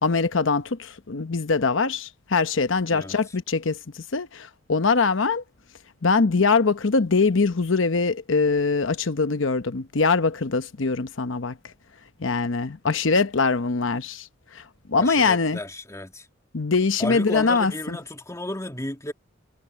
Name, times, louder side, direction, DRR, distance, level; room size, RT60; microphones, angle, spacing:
voice 1, 0.0-5.4 6.0-11.6 12.2-14.3 14.5-14.6 14.9-15.6 16.5-18.0, left 4 dB, 70° left, 0.9 m, -23 dB
voice 2, 15.0-16.3 17.0-19.1, left 1 dB, 15° left, 2.4 m, -33 dB
head